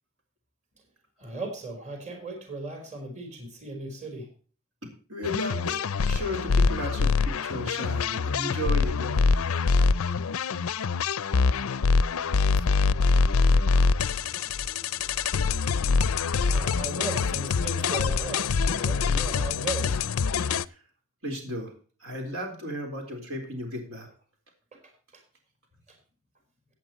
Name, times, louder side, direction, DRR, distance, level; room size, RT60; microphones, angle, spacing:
voice 1, 1.2-4.3 14.6-15.2 16.4-20.0 24.7-25.2 25.9-26.0, right 2 dB, 35° right, 4 dB, 3.8 m, -37 dB
voice 2, 4.8-9.4 20.6-20.8 21.2-21.7 22.0-24.1, equal, 75° right, 3 dB, 4.0 m, -35 dB
sound 1, 5.2-20.6, left 4 dB, 90° left, 0.5 m, -24 dB
16.5 x 8.7 x 3.0 m, 0.39 s
head